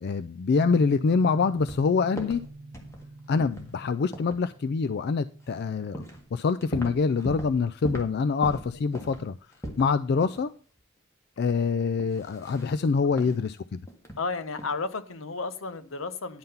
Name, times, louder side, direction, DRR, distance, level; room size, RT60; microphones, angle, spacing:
voice 1, 0.0-2.4 3.3-6.0 6.3-9.3 9.8-10.5 11.4-13.8, left 5 dB, 55° left, 0.4 m, -25 dB
sound 1, 0.5-9.3, right 2 dB, 35° right, 0.8 m, -45 dB
sound 2, 1.6-1.8 2.2-3.1 3.4-3.7 4.1-4.4 5.5-5.6 5.9-6.2 6.5-7.6 7.8-8.1 8.4-9.9 10.2-10.4 10.8-10.9 12.0-12.7 13.2-13.4 13.9-14.2 14.5-14.7, right 1 dB, 15° left, 1.7 m, -39 dB
voice 2, 8.9-9.2 13.2-13.3 14.2-16.4, left 4 dB, 75° left, 0.9 m, -33 dB
10.5 x 5.8 x 5.5 m
head